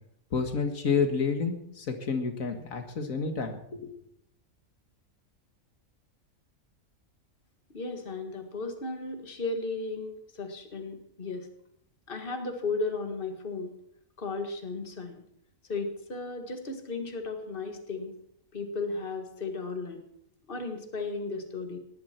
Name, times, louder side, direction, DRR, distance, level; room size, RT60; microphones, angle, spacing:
voice 1, 0.3-3.9, left 5 dB, 85° left, 6 dB, 2.1 m, -29 dB
voice 2, 7.7-11.5 12.1-13.7 14.2-15.2 15.7-18.1 18.5-20.0 20.5-21.8, left 3 dB, 40° left, 6 dB, 2.0 m, -35 dB
19.5 x 14.5 x 4.5 m, 0.73 s
omnidirectional pair, 1.4 m